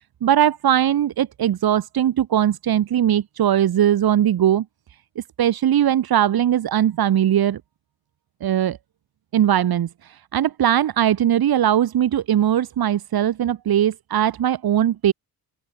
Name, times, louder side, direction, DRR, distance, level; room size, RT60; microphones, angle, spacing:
voice 1, 0.2-4.6 5.2-7.6 8.4-8.8 9.3-15.1, right 10 dB, 80° right, 4.3 m, -20 dB
open air
cardioid pair, 110°, 36 cm